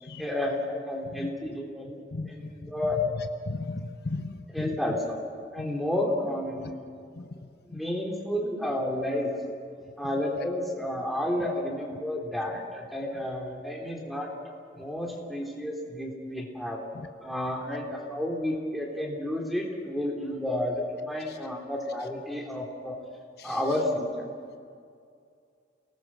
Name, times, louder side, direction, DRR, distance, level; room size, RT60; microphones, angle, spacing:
voice 1, 0.2-2.0 2.2-3.1 4.5-5.1 5.5-6.9 7.7-9.3 10.0-14.3 14.8-16.8 17.2-23.0 23.4-24.2, left 1 dB, ahead, 0 dB, 3.5 m, -31 dB
voice 2, 3.5-4.4 6.6-6.7 7.7-7.8 16.9-17.1 21.3-21.4 23.4-23.6, left 3 dB, 55° left, 8 dB, 0.9 m, -36 dB
29.0 x 19.5 x 6.1 m, 2.3 s
head